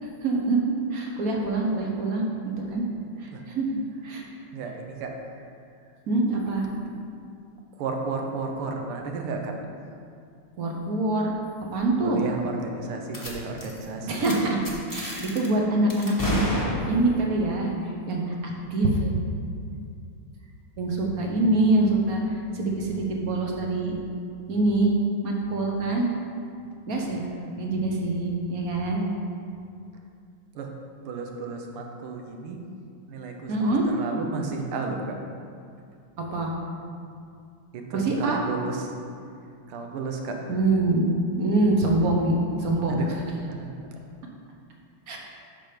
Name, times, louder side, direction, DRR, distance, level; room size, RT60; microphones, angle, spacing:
voice 1, 0.2-2.3 2.6-2.9 3.2-3.7 4.0-4.2 6.1-6.7 10.6-11.3 11.7-12.2 14.1-17.7 18.1-19.1 20.8-23.9 24.5-24.9 25.2-26.1 26.9-27.2 27.6-29.0 33.5-33.9 36.2-36.5 37.9-38.4 40.5-41.1 41.4-43.0 45.1-45.2, right 2 dB, 50° right, 0 dB, 1.2 m, -25 dB
voice 2, 4.5-5.4 7.8-9.5 12.0-14.3 27.0-27.6 28.2-28.3 30.5-30.7 31.1-32.6 33.1-35.2 37.7-38.9 39.7-40.7 42.9-43.2 43.5-43.7, right 4 dB, 80° right, 3 dB, 1.7 m, -33 dB
sound 1, 13.1-13.3 13.6-13.8 14.1-14.3 14.6-15.5 15.9-17.2, left 1 dB, 15° left, 0.7 m, -30 dB
7.7 x 6.0 x 5.1 m, 2.3 s
omnidirectional pair, 2.4 m